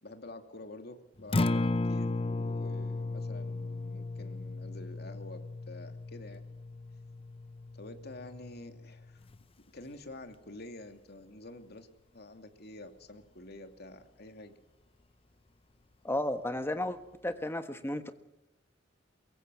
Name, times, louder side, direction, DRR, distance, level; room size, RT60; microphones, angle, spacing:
voice 1, 0.0-6.4 7.7-9.2 9.7-11.9 12.1-14.5, left 1 dB, 55° left, 6 dB, 2.5 m, -48 dB
Acoustic guitar, 1.2-9.4, left 2 dB, 30° left, 0.7 m, -35 dB
voice 2, 16.0-17.0 17.2-18.1, left 1 dB, 15° left, 9 dB, 1.4 m, -33 dB
23.0 x 22.5 x 6.3 m, 0.94 s
head